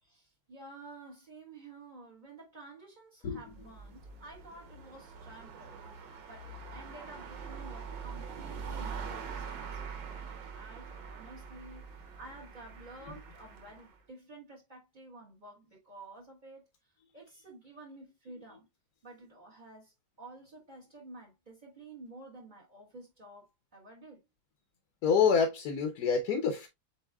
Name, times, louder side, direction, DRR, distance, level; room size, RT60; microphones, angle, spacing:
voice 1, 0.0-5.9 6.3-9.8 10.1-16.6 17.1-18.7 19.0-24.2, right 2 dB, 30° right, 1.5 m, -51 dB
sound 1, 3.3-13.9, right 5 dB, 85° right, 1.6 m, -44 dB
voice 2, 25.0-26.7, left 6 dB, 65° left, 1.2 m, -27 dB
7.9 x 2.7 x 2.2 m
omnidirectional pair, 1.9 m